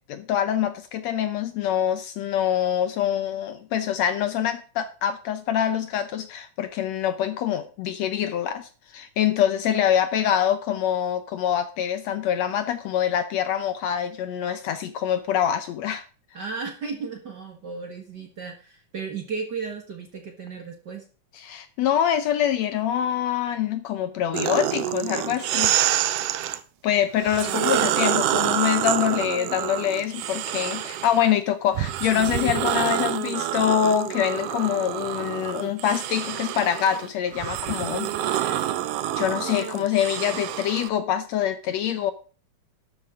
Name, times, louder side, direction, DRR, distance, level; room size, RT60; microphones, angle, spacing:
voice 1, 0.1-16.0 21.4-25.7 26.8-38.6 39.2-42.1, left 10 dB, 70° left, 10 dB, 1.8 m, -25 dB
voice 2, 16.3-21.0, right 5 dB, 45° right, 3 dB, 1.6 m, -34 dB
sound 1, 24.3-26.6 27.2-31.3 31.7-40.9, right 12 dB, 80° right, 1.4 m, -27 dB
12.5 x 10.0 x 3.7 m, 0.36 s
omnidirectional pair, 3.6 m